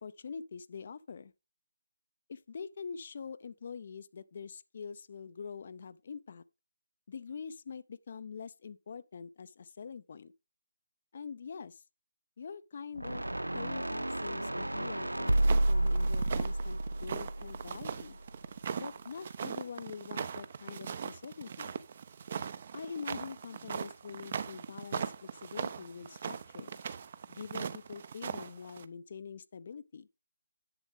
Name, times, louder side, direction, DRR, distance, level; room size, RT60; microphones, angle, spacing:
voice 1, 0.0-1.3 2.3-6.4 7.1-10.3 11.1-11.8 12.4-13.2 13.5-18.2 18.8-21.7 22.7-26.8 27.3-30.1, left 6 dB, 40° left, 0.5 m, -45 dB
sound 1, 13.0-18.2, right 1 dB, 80° right, 0.4 m, -31 dB
sound 2, 15.3-28.9, right 6 dB, 35° right, 0.7 m, -40 dB
10.5 x 8.0 x 3.6 m
figure-of-eight pair, 155°, 0 cm